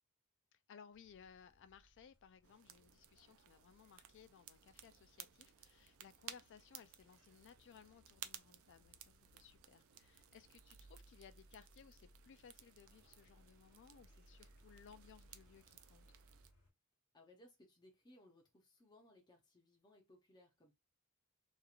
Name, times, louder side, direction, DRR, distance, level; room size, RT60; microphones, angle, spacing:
voice 1, 0.5-16.1, left 7 dB, 55° left, 0.4 m, -62 dB
sound 1, 0.9-16.7, right 1 dB, 80° left, 1.2 m, -68 dB
sound 2, 2.4-16.5, right 11 dB, 65° right, 0.4 m, -58 dB
voice 2, 17.1-20.7, left 1 dB, 20° left, 0.7 m, -65 dB
2.9 x 2.4 x 2.4 m
head